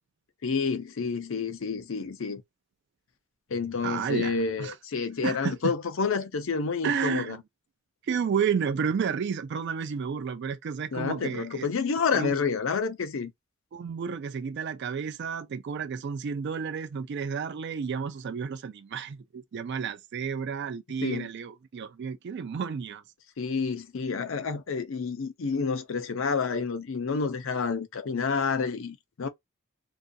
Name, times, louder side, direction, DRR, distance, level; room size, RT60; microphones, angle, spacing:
voice 1, 0.4-2.4 3.5-7.4 10.9-13.3 21.0-21.3 23.4-29.3, left 5 dB, 70° left, 0.5 m, -29 dB
voice 2, 3.8-4.7 5.2-5.7 6.8-7.4 8.1-11.7 12.1-12.4 13.7-23.0, right 6 dB, 55° right, 0.3 m, -31 dB
2.4 x 2.3 x 2.5 m
head